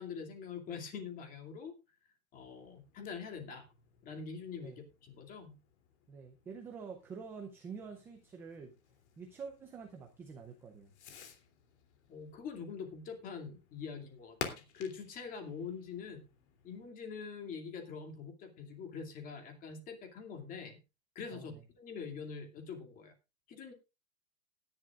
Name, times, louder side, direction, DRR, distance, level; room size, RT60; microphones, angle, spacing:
voice 1, 0.0-1.7 2.3-3.6 4.0-4.7 5.0-5.5 12.1-16.3 16.6-20.8 21.1-23.1 23.5-23.7, left 6 dB, 20° left, 4 dB, 2.4 m, -44 dB
Fireworks, 2.3-16.9, left 7 dB, 55° left, 3.1 m, -52 dB
voice 2, 6.1-8.7 9.2-10.9 21.3-21.6, right 5 dB, 5° right, 3 dB, 0.5 m, -47 dB
19.5 x 10.5 x 2.4 m, 0.27 s
hypercardioid pair, 160°, 41 cm